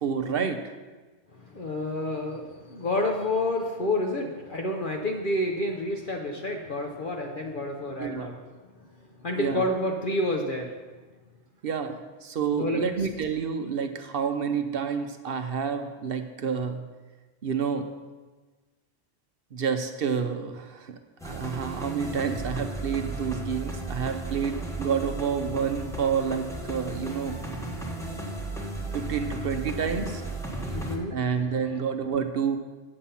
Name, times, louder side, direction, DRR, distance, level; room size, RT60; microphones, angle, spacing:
voice 1, 0.0-0.7 8.0-8.4 9.3-9.7 11.6-16.8 17.4-17.9 19.5-21.0 21.2-27.4 28.9-30.2 31.1-32.6, right 6 dB, 55° right, 7 dB, 0.8 m, -29 dB
voice 2, 1.3-8.3 9.2-10.7 12.5-12.9 30.7-31.1, left 1 dB, 45° left, 1 dB, 0.9 m, -29 dB
sound 1, 21.2-31.0, right 2 dB, 5° left, 0.9 m, -35 dB
8.8 x 7.3 x 5.6 m, 1.3 s
omnidirectional pair, 1.3 m